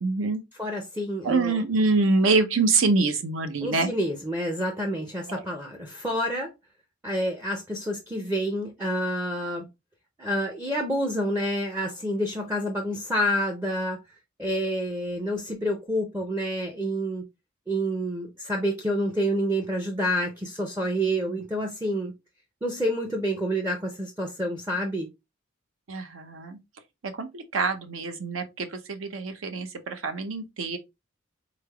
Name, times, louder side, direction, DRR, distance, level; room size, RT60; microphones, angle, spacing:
voice 1, 0.0-0.4 1.2-3.9 5.3-5.4 21.3-21.4 25.9-26.6 27.2-30.8, right 3 dB, 80° right, 0.6 m, -25 dB
voice 2, 0.6-1.6 3.6-6.5 7.0-9.7 10.2-14.0 14.4-17.2 17.7-22.1 22.6-25.1, equal, 10° right, 0.4 m, -28 dB
3.8 x 3.2 x 2.2 m
head